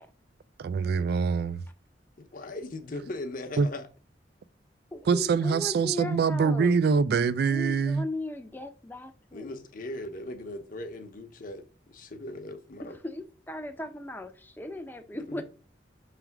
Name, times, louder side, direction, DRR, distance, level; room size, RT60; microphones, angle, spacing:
voice 1, 0.6-1.6 3.6-3.7 5.1-8.0, right 5 dB, 60° right, 0.3 m, -24 dB
voice 2, 2.2-3.9 9.3-13.0 15.3-15.4, left 2 dB, 50° left, 0.9 m, -39 dB
voice 3, 4.9-6.7 7.5-9.6 12.8-15.4, left 1 dB, 10° left, 0.6 m, -37 dB
6.0 x 3.3 x 4.6 m
head